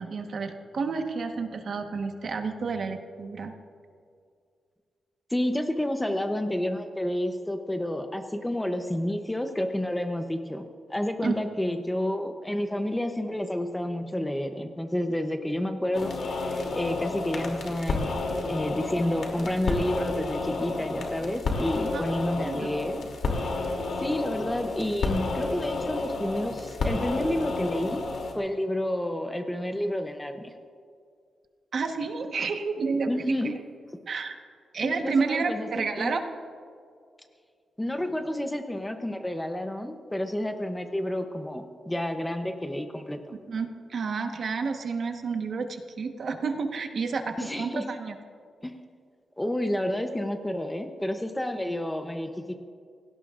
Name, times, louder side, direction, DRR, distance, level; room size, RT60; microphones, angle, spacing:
voice 1, 0.0-3.5 11.2-11.4 21.9-22.7 31.7-33.5 34.1-34.4 34.7-36.2 43.3-48.1, right 4 dB, 50° right, 5 dB, 1.2 m, -30 dB
voice 2, 5.3-10.6 10.9-18.2 18.5-23.0 24.0-28.0 28.4-30.5 33.1-33.5 34.8-36.1 37.8-43.3 47.4-47.9 48.6-48.8 49.4-52.5, left 1 dB, 10° left, 6 dB, 0.7 m, -30 dB
sound 1, 15.9-28.3, left 3 dB, 60° left, 2.7 m, -31 dB
29.0 x 17.5 x 2.5 m, 2.2 s
wide cardioid pair, 165°, 0 cm